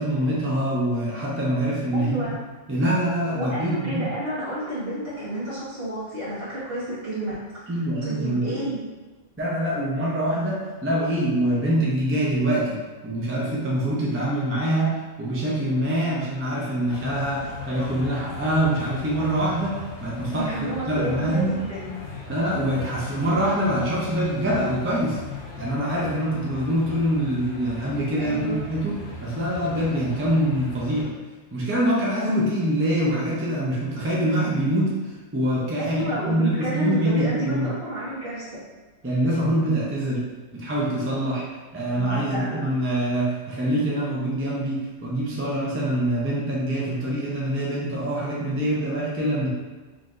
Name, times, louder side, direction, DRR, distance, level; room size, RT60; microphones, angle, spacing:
voice 1, 0.0-2.3 2.7-4.0 7.7-8.6 9.4-21.5 22.3-25.2 25.6-31.1 31.5-37.7 39.0-40.3 40.5-41.5 41.7-49.5, right 1 dB, 20° right, -5 dB, 0.4 m, -25 dB
voice 2, 1.9-2.4 3.3-7.7 8.0-8.9 20.3-22.2 28.2-28.6 35.8-38.6 41.8-42.6, right 1 dB, 50° right, -10 dB, 1.6 m, -30 dB
sound 1, 16.9-31.0, left 4 dB, 70° left, 1.0 m, -38 dB
4.0 x 3.0 x 2.6 m, 1.3 s
omnidirectional pair, 1.2 m